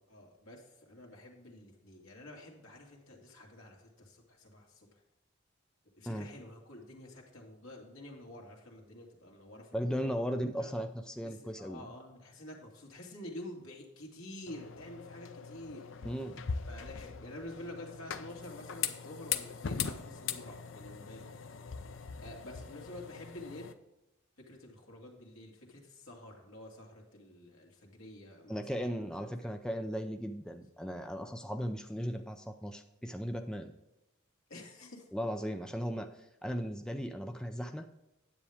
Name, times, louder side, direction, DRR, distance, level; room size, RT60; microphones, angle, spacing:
voice 1, 0.1-5.0 6.0-10.2 10.6-10.7 11.2-15.9 16.7-21.5 22.2-23.7 24.5-28.9 29.2-29.5 34.5-35.5, left 1 dB, 85° left, 0 dB, 2.2 m, -49 dB
voice 2, 9.7-11.9 16.0-16.4 28.5-33.7 35.1-36.1 36.4-37.9, equal, 5° left, 5 dB, 0.4 m, -37 dB
sound 1, 14.5-23.7, left 7 dB, 65° left, 0.6 m, -41 dB
9.9 x 8.3 x 3.5 m, 0.92 s
head